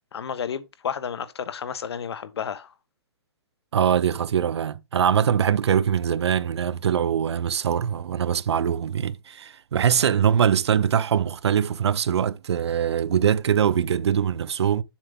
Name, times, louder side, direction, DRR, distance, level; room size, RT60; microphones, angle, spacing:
voice 1, 0.1-2.7, left 7 dB, 70° left, 1.1 m, -31 dB
voice 2, 3.7-14.8, right 8 dB, 90° right, 0.6 m, -22 dB
7.2 x 6.9 x 3.5 m
hypercardioid pair, 170°, 14 cm